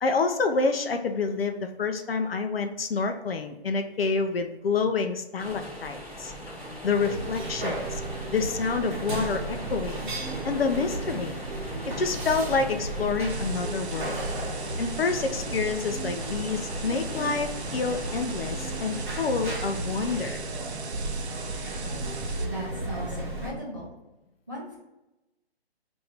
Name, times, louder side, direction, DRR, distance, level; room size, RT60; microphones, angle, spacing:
voice 1, 0.0-6.3 6.8-8.0 8.3-10.1 10.4-11.3 12.0-14.2 14.8-20.4, left 4 dB, 65° left, 6 dB, 0.5 m, -28 dB
sound 1, 5.4-20.2, equal, 5° left, 0.9 m, -41 dB
sound 2, 6.9-23.5, right 2 dB, 50° right, 0.9 m, -34 dB
sound 3, 13.3-22.5, right 4 dB, 85° right, 0.6 m, -40 dB
voice 2, 22.4-23.9 24.5-24.8, equal, 20° right, -7 dB, 0.5 m, -37 dB
3.2 x 2.6 x 4.3 m, 0.98 s
hypercardioid pair, 175°, 32 cm